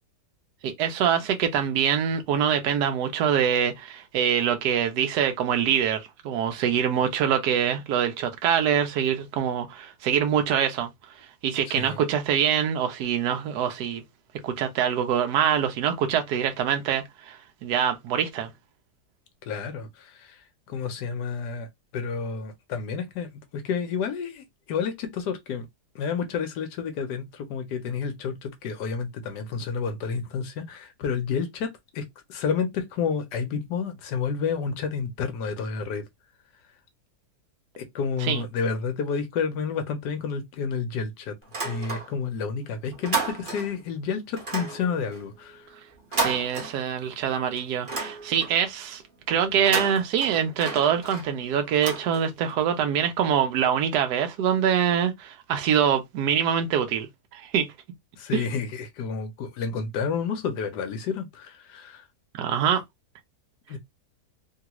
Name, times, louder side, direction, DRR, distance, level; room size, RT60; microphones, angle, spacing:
voice 1, 0.6-10.9 11.4-14.0 14.4-18.5 38.2-38.4 46.2-49.0 49.3-57.1 57.3-57.7 58.3-58.5 62.3-62.8, right 8 dB, 80° right, 1.2 m, -24 dB
voice 2, 11.7-12.0 19.4-21.7 21.9-25.7 25.9-36.0 37.8-41.3 41.6-45.7 46.1-46.2 58.2-62.0 63.7-63.8, left 6 dB, 85° left, 1.3 m, -30 dB
sound 1, 41.4-42.4 42.7-43.9 44.4-47.2 47.6-48.7 49.5-52.6, right 3 dB, 35° right, 1.2 m, -33 dB
3.3 x 2.3 x 2.9 m
omnidirectional pair, 1.8 m